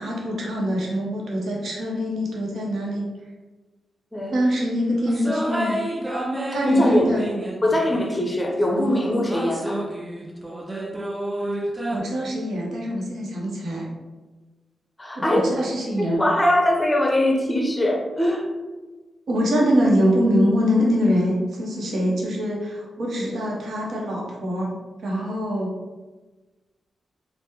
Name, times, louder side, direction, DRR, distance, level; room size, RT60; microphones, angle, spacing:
voice 1, 0.0-3.0 4.3-5.8 6.5-7.2 11.9-13.9 15.2-16.2 19.3-24.7 25.0-25.7, equal, 70° right, -3 dB, 0.8 m, -24 dB
sound 1, 5.1-8.4 9.3-12.0, right 1 dB, 25° right, 0.5 m, -30 dB
voice 2, 6.7-7.1 7.6-9.8 15.0-15.5 16.0-18.4, left 1 dB, 20° left, 1 dB, 0.7 m, -21 dB
3.3 x 2.1 x 2.9 m, 1.2 s
supercardioid pair, 45°, 0 cm